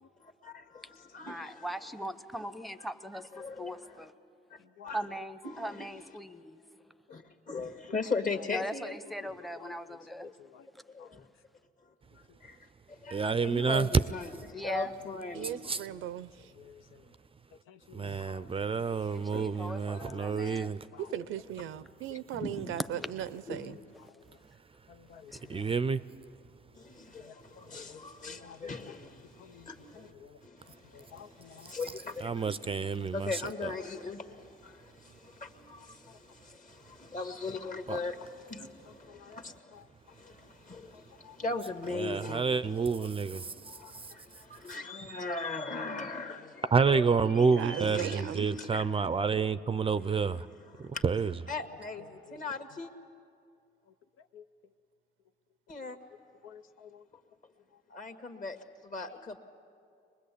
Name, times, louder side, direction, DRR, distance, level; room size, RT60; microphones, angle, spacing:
voice 1, 0.2-1.7 3.3-4.1 4.5-4.6 4.8-5.0 5.4-5.9 7.1-9.3 10.9-11.3 12.4-12.6 12.9-15.8 18.0-20.5 22.1-22.8 23.5-23.7 25.3-25.7 26.7-30.1 30.4-39.8 40.1-42.5 42.9-43.1 43.4-48.9 49.8-49.9 50.6-51.0 51.5-52.9 55.7-56.0 57.9-58.5 58.9-59.4, left 3 dB, 40° left, 1.8 m, -40 dB
voice 2, 1.2-4.1 4.9-6.6 8.5-10.3 14.5-14.9 19.1-20.7 22.4-22.5 22.8-22.9 25.3-25.4, equal, ahead, 0.8 m, -39 dB
voice 3, 13.1-13.9 15.7-15.8 17.9-20.8 25.5-26.0 32.2-33.7 37.9-38.0 41.9-43.5 46.7-50.5 50.8-51.3, right 5 dB, 30° right, 0.5 m, -29 dB
voice 4, 15.3-16.5 21.0-23.8 47.5-48.5, right 11 dB, 85° right, 0.6 m, -38 dB
voice 5, 17.7-18.7 20.1-20.3 20.9-21.1 24.9-25.7 27.3-27.6 27.9-28.0 28.3-28.7 29.4-29.7 29.9-30.4 30.9-31.7 33.0-33.1 39.1-39.4 39.7-39.8 50.2-50.4 54.3-54.4 55.8-55.9 56.4-57.0, left 8 dB, 85° left, 0.8 m, -52 dB
23.5 x 20.5 x 8.5 m
cardioid pair, 90°, 20 cm